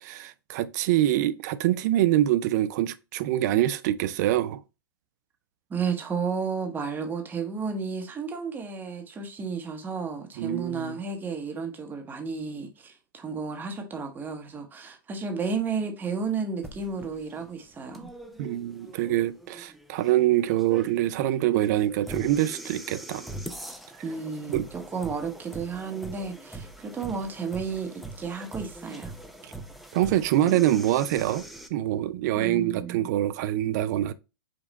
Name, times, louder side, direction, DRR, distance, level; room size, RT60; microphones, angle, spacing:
voice 1, 0.0-4.6 10.4-11.0 18.4-23.3 24.5-24.6 29.9-31.4 31.7-34.1, right 13 dB, 50° right, 0.5 m, -25 dB
voice 2, 5.7-18.1 24.0-29.1 32.3-33.0, right 5 dB, 15° right, 0.9 m, -32 dB
sound 1, 16.6-31.7, right 1 dB, ahead, 0.5 m, -42 dB
5.1 x 2.4 x 4.0 m
hypercardioid pair, 120°, 12 cm